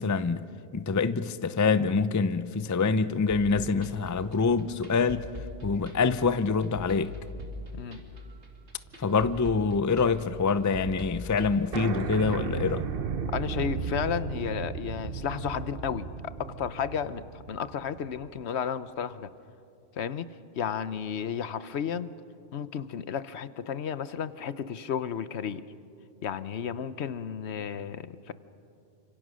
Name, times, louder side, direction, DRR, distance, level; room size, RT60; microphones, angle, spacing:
voice 1, 0.0-5.3 5.6-7.1 9.0-12.9, left 4 dB, 25° left, 0.4 m, -26 dB
sound 1, 3.3-11.5, equal, 85° right, 2.8 m, -41 dB
sound 2, 3.8-6.1 6.6-6.7 8.2-8.5 8.8-10.2 10.5-10.6 10.8-10.9 11.2-11.3 11.7-18.4, right 6 dB, 60° right, 1.1 m, -36 dB
voice 2, 13.3-19.3 20.0-20.3 20.6-22.1 22.5-25.6 26.2-28.3, left 8 dB, 75° left, 1.1 m, -33 dB
29.0 x 26.0 x 6.3 m
omnidirectional pair, 1.1 m